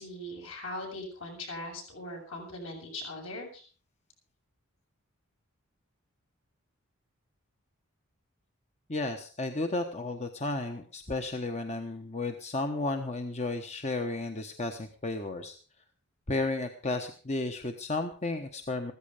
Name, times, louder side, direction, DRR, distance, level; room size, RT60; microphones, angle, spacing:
voice 1, 0.0-3.6, left 1 dB, 65° left, 1 dB, 7.6 m, -40 dB
voice 2, 8.9-15.6 16.3-18.9, left 2 dB, 30° left, 6 dB, 1.1 m, -33 dB
15.5 x 14.5 x 5.0 m, 0.38 s
head